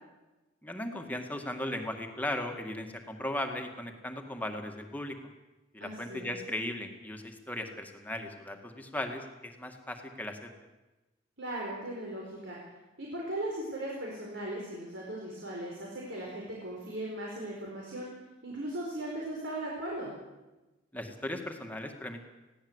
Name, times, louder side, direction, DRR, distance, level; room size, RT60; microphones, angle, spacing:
voice 1, 0.6-5.2 5.7-10.5 20.9-22.3, left 1 dB, 10° left, 4 dB, 2.1 m, -37 dB
voice 2, 5.8-6.4 11.4-12.6 13.0-18.1 18.4-20.1, right 1 dB, 70° right, -3 dB, 4.7 m, -38 dB
21.0 x 16.5 x 8.1 m, 1.1 s
head